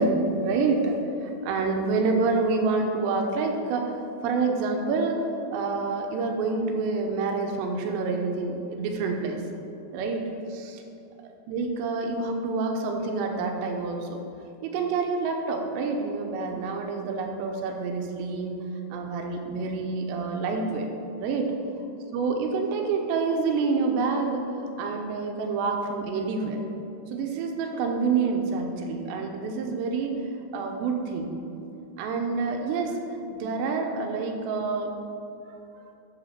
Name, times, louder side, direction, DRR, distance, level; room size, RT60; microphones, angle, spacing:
voice 1, 0.0-5.3 5.5-9.4 9.9-10.2 10.5-10.8 11.5-14.2 14.6-18.6 18.9-20.9 21.2-21.5 22.1-24.4 24.8-26.6 27.1-30.1 30.5-31.3 32.0-33.0 33.3-35.0, right 4 dB, 80° right, 3 dB, 2.8 m, -27 dB
8.1 x 7.2 x 5.7 m, 2.7 s
omnidirectional pair, 5.5 m